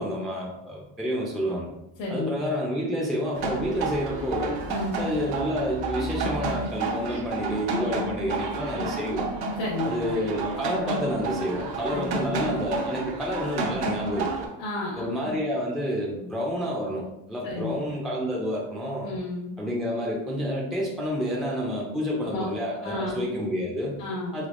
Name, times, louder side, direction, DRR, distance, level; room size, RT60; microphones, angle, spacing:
voice 1, 0.0-1.7 2.1-4.6 5.0-9.3 9.8-14.5 15.0-19.1 19.6-24.0 24.3-24.5, equal, ahead, -4 dB, 0.4 m, -29 dB
voice 2, 2.0-2.4 4.7-5.0 9.6-10.2 11.9-12.3 14.6-15.4 17.4-17.8 19.0-19.5 22.2-22.5 22.8-23.4 24.0-24.4, left 2 dB, 80° left, -5 dB, 1.1 m, -32 dB
sound 1, 3.3-14.5, right 3 dB, 60° right, 0.7 m, -31 dB
3.5 x 3.0 x 2.4 m, 0.89 s
cardioid pair, 130°, 44 cm